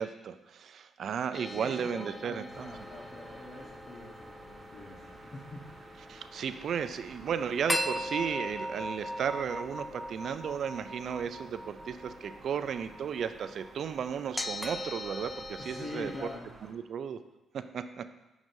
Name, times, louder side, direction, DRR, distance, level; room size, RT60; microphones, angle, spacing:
voice 1, 0.0-2.7 6.1-16.1 16.7-17.2 17.5-18.1, right 7 dB, 60° right, 11 dB, 0.4 m, -34 dB
sound 1, 1.3-16.4, left 1 dB, 15° left, 0.3 m, -40 dB
voice 2, 1.5-5.7 15.6-16.5, left 2 dB, 45° left, -5 dB, 1.2 m, -44 dB
sound 2, 2.5-16.7, right 2 dB, 35° right, 1.1 m, -53 dB
7.3 x 6.0 x 2.7 m, 1.0 s
cardioid pair, 90°, 0 cm